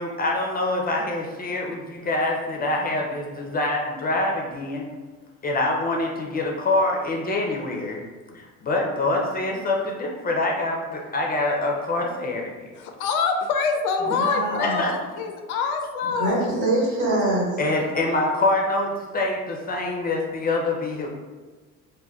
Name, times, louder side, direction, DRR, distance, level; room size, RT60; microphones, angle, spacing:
voice 1, 0.0-4.8 5.4-8.0 8.3-12.5 14.6-14.9 17.6-21.1, left 2 dB, 20° left, 0 dB, 0.5 m, -25 dB
voice 2, 12.7-16.5, left 5 dB, 85° left, 5 dB, 0.5 m, -25 dB
voice 3, 14.2-14.8 16.1-17.6, right 1 dB, 80° right, -5 dB, 1.3 m, -24 dB
3.6 x 2.3 x 2.2 m, 1.3 s
hypercardioid pair, 80°, 42 cm